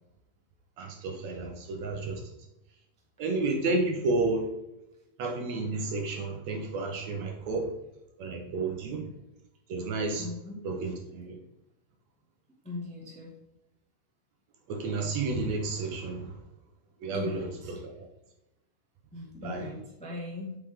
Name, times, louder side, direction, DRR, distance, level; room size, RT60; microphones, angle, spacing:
voice 1, 0.8-2.2 3.2-4.5 5.2-7.7 8.2-9.1 9.7-10.3 10.6-11.4 14.7-16.4 17.0-18.1 19.4-19.7, right 3 dB, 65° right, 2 dB, 2.0 m, -31 dB
voice 2, 10.2-10.6 12.6-13.3 17.1-17.7 19.1-20.6, left 2 dB, 5° left, -3 dB, 0.6 m, -39 dB
8.3 x 6.0 x 3.7 m, 0.89 s
omnidirectional pair, 3.8 m